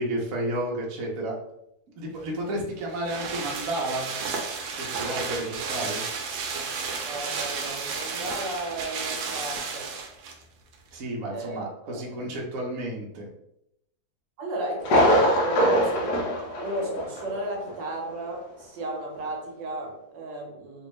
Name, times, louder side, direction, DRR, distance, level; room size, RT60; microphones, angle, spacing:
voice 1, 0.0-1.3 2.0-4.3 4.8-6.0 10.9-13.3, right 1 dB, 55° right, -2 dB, 1.0 m, -31 dB
sound 1, 2.3-10.4 10.7-10.8, right 5 dB, 90° right, 1.4 m, -32 dB
voice 2, 7.0-9.9 11.3-12.0 14.4-16.1 16.6-20.9, right 1 dB, 75° right, -1 dB, 1.5 m, -34 dB
Thunder, 14.8-17.4 17.7-17.8 18.3-18.4, equal, 65° left, 1.2 m, -23 dB
3.4 x 2.7 x 3.0 m, 0.80 s
omnidirectional pair, 2.0 m